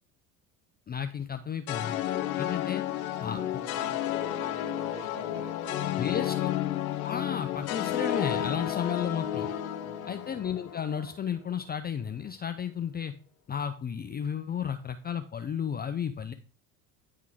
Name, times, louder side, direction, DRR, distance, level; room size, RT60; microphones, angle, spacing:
voice 1, 0.9-2.0 2.4-2.8 3.2-3.4 6.0-6.5 7.0-9.5 10.1-13.1 13.5-16.3, left 8 dB, 25° left, 8 dB, 0.5 m, -33 dB
sound 1, 1.7-11.0, left 12 dB, 90° left, 0.9 m, -32 dB
voice 2, 3.1-6.6 9.8-10.3, right 2 dB, 35° right, -1 dB, 3.3 m, -48 dB
sound 2, 3.4-11.2, left 7 dB, 70° left, 1.3 m, -49 dB
9.7 x 3.8 x 4.7 m, 0.40 s
hypercardioid pair, 75°, 42 cm